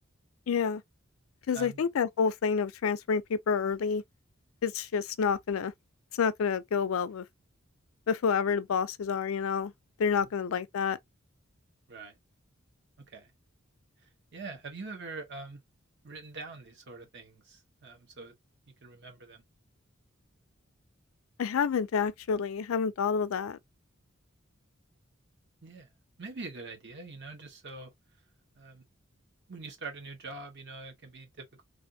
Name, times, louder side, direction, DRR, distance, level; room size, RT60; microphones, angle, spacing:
voice 1, 0.5-0.8 1.5-4.0 4.6-5.7 6.2-7.2 8.1-9.7 10.0-11.0 21.4-23.6, left 6 dB, 80° left, 0.4 m, -28 dB
voice 2, 14.3-15.6 16.0-18.3 18.8-19.4 25.6-25.9 26.2-27.9 28.6-28.8 29.5-31.6, right 3 dB, 55° right, 1.1 m, -44 dB
3.4 x 2.5 x 2.6 m
head